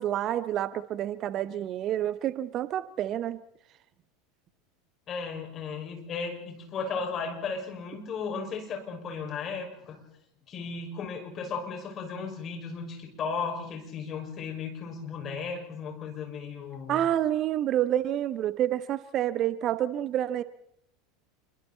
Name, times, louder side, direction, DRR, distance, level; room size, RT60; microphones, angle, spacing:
voice 1, 0.0-3.4 16.9-20.4, right 11 dB, 40° right, 16 dB, 0.9 m, -28 dB
voice 2, 5.1-10.0 10.5-17.1, left 5 dB, 35° left, 3 dB, 6.0 m, -35 dB
27.5 x 23.5 x 4.3 m, 0.75 s
figure-of-eight pair, 80°, 0 cm